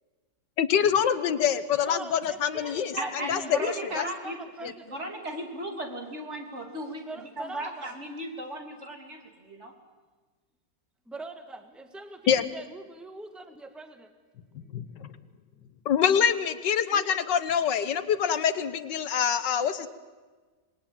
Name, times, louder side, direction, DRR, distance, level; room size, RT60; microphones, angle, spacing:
voice 1, 0.6-2.9 3.3-4.1 4.6-4.7 12.3-12.4 14.7-15.1 15.9-19.9, left 8 dB, 80° left, 12 dB, 1.8 m, -25 dB
voice 2, 1.9-5.1 7.1-7.9 11.1-14.1 16.9-17.2, right 2 dB, ahead, 7 dB, 1.6 m, -43 dB
voice 3, 3.0-4.4 4.6-7.0 7.4-9.7, right 1 dB, 40° right, 3 dB, 3.5 m, -36 dB
26.5 x 20.5 x 9.0 m, 1.4 s
omnidirectional pair, 1.9 m